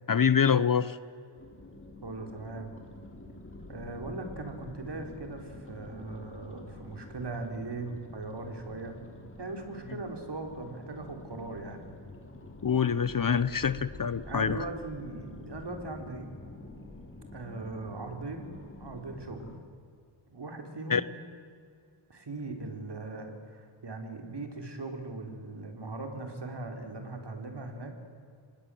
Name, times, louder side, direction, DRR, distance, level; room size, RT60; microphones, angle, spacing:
voice 1, 0.1-1.0 12.6-14.6 20.9-21.0, left 7 dB, 40° left, 17 dB, 0.8 m, -25 dB
sound 1, 1.3-19.6, left 2 dB, 25° left, 3.5 m, -48 dB
voice 2, 2.0-2.8 3.7-8.9 9.4-11.9 14.3-16.3 17.3-18.5 18.8-19.5 20.3-21.1 22.1-28.0, right 3 dB, 55° right, 5 dB, 4.1 m, -39 dB
25.5 x 20.0 x 7.8 m, 2.2 s
wide cardioid pair, 70°, 49 cm